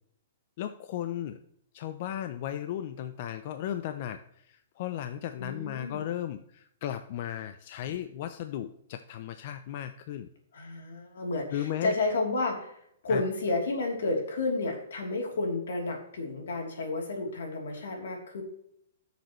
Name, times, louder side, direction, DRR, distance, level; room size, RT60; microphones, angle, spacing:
voice 1, 0.6-1.4 1.7-10.3 11.5-11.9 13.1-13.2, left 11 dB, 40° left, 10 dB, 0.5 m, -35 dB
voice 2, 5.4-6.1 10.5-12.8 13.0-18.4, left 2 dB, 80° left, 1 dB, 3.1 m, -31 dB
14.0 x 6.7 x 3.1 m, 0.72 s
hypercardioid pair, 165°, 0 cm